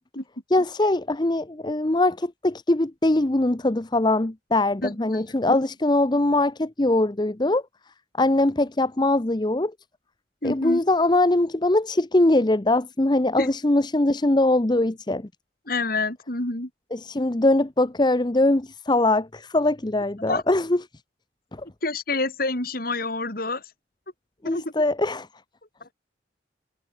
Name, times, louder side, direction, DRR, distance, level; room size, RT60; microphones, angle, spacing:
voice 1, 0.5-7.6 8.2-9.7 10.4-15.3 16.9-20.8 21.5-21.7 24.4-25.3, left 2 dB, 25° left, 0.8 m, -22 dB
voice 2, 4.8-5.2 5.5-5.6 10.4-10.8 13.4-13.5 15.7-16.7 20.3-20.4 21.8-23.7 24.4-24.7, left 2 dB, 50° left, 3.8 m, -28 dB
head